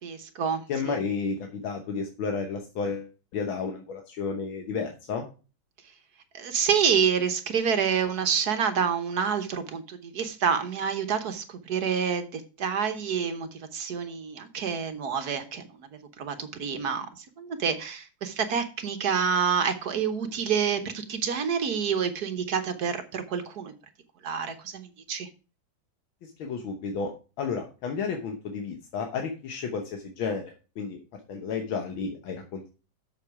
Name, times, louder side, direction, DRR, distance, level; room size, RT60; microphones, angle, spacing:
voice 1, 0.0-1.0 6.3-15.9 16.2-23.7 24.2-25.3, right 7 dB, 55° right, 1.4 m, -28 dB
voice 2, 0.7-5.3 26.2-27.1 27.4-31.0 31.3-32.7, left 5 dB, 85° left, 1.9 m, -32 dB
7.3 x 7.0 x 4.7 m
omnidirectional pair, 2.2 m